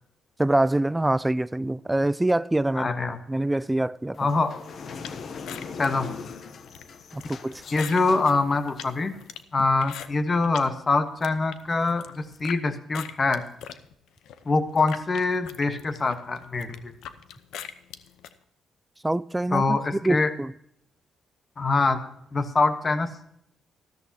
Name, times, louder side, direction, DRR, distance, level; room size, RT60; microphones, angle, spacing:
voice 1, 0.4-2.9 3.3-4.2 7.1-7.6 19.0-20.5, right 1 dB, 10° right, 0.3 m, -25 dB
voice 2, 2.7-3.2 4.2-4.5 5.7-6.1 7.7-9.1 9.5-13.4 14.4-16.9 19.5-20.3 21.6-22.0 22.3-23.1, left 3 dB, 35° left, 1.1 m, -24 dB
sound 1, 4.1-9.4, left 5 dB, 55° left, 0.8 m, -40 dB
sound 2, 5.0-10.7 11.1-12.6 12.9-18.3, left 9 dB, 85° left, 0.8 m, -42 dB
13.5 x 13.5 x 2.9 m
cardioid pair, 90°, 0 cm